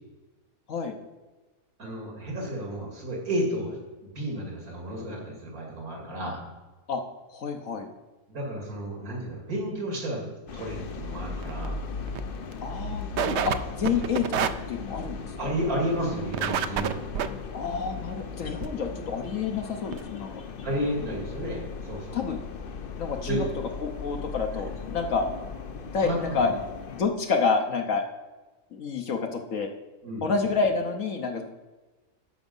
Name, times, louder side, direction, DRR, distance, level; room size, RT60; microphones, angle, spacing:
voice 1, 1.8-6.4 8.3-10.3 10.5-11.8 15.4-17.0 20.6-22.2 23.2-23.5 26.0-26.6 30.0-30.3, right 1 dB, 80° right, -2 dB, 2.9 m, -32 dB
voice 2, 7.3-7.9 12.6-15.2 17.5-20.3 22.1-22.4 23.0-23.4 23.8-25.3 25.9-26.5 26.9-28.0 28.7-29.7 30.2-31.4, left 5 dB, 65° left, 3 dB, 1.3 m, -28 dB
sound 1, 10.5-27.0, left 5 dB, 50° left, 0.7 m, -37 dB
sound 2, 10.8-10.9 11.3-11.7 12.1-12.2 12.5-12.6 13.2-13.6 13.8-14.5 16.3-17.3 18.6-18.7 19.3-19.4 19.6-19.7 19.9-20.0, right 9 dB, 65° right, 0.7 m, -27 dB
13.0 x 5.2 x 5.4 m, 1.2 s
omnidirectional pair, 1.5 m